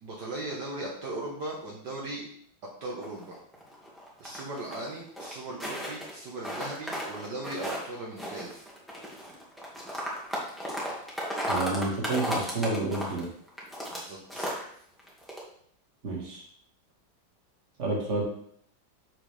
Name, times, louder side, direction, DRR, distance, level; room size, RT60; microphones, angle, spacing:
voice 1, 0.0-2.3 2.8-3.4 4.2-8.7 13.9-14.5, right 2 dB, 60° right, -3 dB, 1.8 m, -38 dB
sound 1, 3.0-4.9 5.2-6.1 6.4-7.9 8.2-14.0 14.3-14.6 15.0-15.4, equal, ahead, 1.7 m, -34 dB
voice 2, 11.5-13.3 16.0-16.4 17.8-18.2, right 2 dB, 40° right, -1 dB, 2.0 m, -29 dB
7.3 x 6.4 x 3.4 m, 0.64 s
omnidirectional pair, 2.1 m